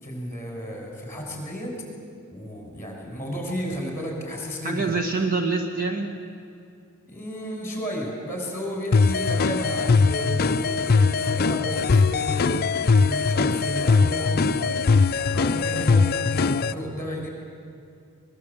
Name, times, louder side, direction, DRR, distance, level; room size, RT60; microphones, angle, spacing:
voice 1, 0.0-1.8 2.3-4.9 7.0-15.0 15.3-17.3, equal, 10° left, 0 dB, 6.1 m, -33 dB
voice 2, 4.6-6.1, right 3 dB, 40° right, 3 dB, 1.7 m, -25 dB
sound 1, 8.9-16.7, left 4 dB, 45° left, 0.5 m, -21 dB
23.0 x 21.0 x 8.5 m, 2.5 s
head